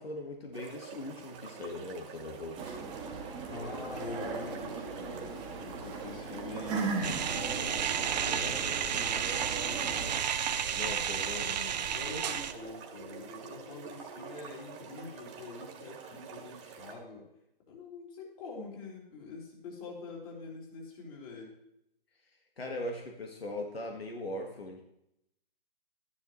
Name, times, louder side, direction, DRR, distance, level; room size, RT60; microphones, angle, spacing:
voice 1, 0.0-2.8 10.5-11.5 16.6-16.7 22.6-24.8, left 1 dB, 90° left, 2 dB, 1.8 m, -40 dB
sound 1, 0.5-17.0, right 6 dB, 30° right, 1.7 m, -47 dB
sound 2, 2.6-10.2, right 4 dB, 15° right, 1.5 m, -38 dB
voice 2, 3.5-7.9 8.2-10.5 11.4-17.2 17.7-21.5, left 4 dB, 35° left, -3 dB, 3.9 m, -45 dB
sound 3, 7.0-12.5, right 8 dB, 45° right, 0.7 m, -32 dB
12.5 x 10.5 x 3.2 m, 0.80 s
hypercardioid pair, 140°, 29 cm